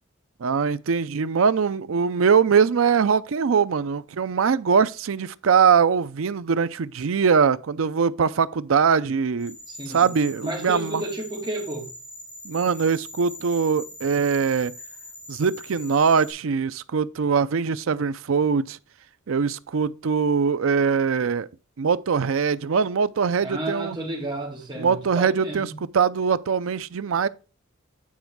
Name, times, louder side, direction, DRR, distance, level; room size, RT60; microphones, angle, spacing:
voice 1, 0.4-9.6 9.9-11.0 12.4-14.7 15.3-18.8 19.3-21.5 21.8-24.0 24.8-27.3, right 6 dB, 80° right, 0.5 m, -22 dB
sound 1, 9.4-16.3, left 1 dB, 40° left, 3.3 m, -42 dB
voice 2, 9.7-11.9 23.4-25.8, right 1 dB, 25° right, 2.3 m, -32 dB
9.3 x 4.4 x 4.7 m
head